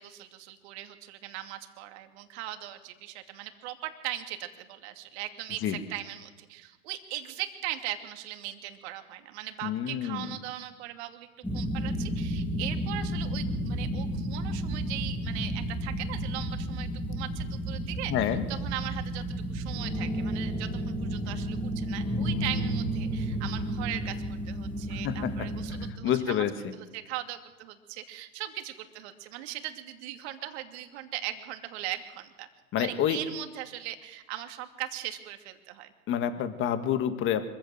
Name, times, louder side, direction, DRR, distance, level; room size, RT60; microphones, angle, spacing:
voice 1, 0.0-26.5 26.7-32.5 32.8-35.9, right 13 dB, 45° right, 6 dB, 2.7 m, -39 dB
voice 2, 9.6-10.3 18.1-18.4 25.0-25.3 26.0-26.5 32.7-33.2 36.1-37.4, left 10 dB, 25° left, 9 dB, 1.8 m, -27 dB
sound 1, 11.4-25.9, equal, 5° left, 2.5 m, -32 dB
25.5 x 15.0 x 7.9 m, 1.2 s
hypercardioid pair, 110°, 44 cm